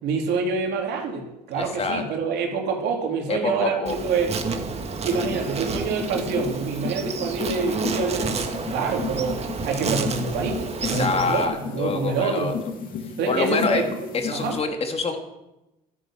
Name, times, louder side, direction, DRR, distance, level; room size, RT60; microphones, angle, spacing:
voice 1, 0.0-4.4 5.0-12.5 13.2-13.9 14.3-14.6, right 4 dB, 80° right, 2 dB, 3.6 m, -26 dB
voice 2, 1.6-2.0 3.3-4.0 10.8-12.5 13.3-13.8 14.1-15.2, left 4 dB, 35° left, 5 dB, 2.7 m, -26 dB
Insect, 3.9-11.5, right 5 dB, 40° right, 2.1 m, -30 dB
sound 1, 5.1-14.6, left 6 dB, 55° left, 3.0 m, -35 dB
13.5 x 12.5 x 7.6 m, 0.96 s
cardioid pair, 110°, 17 cm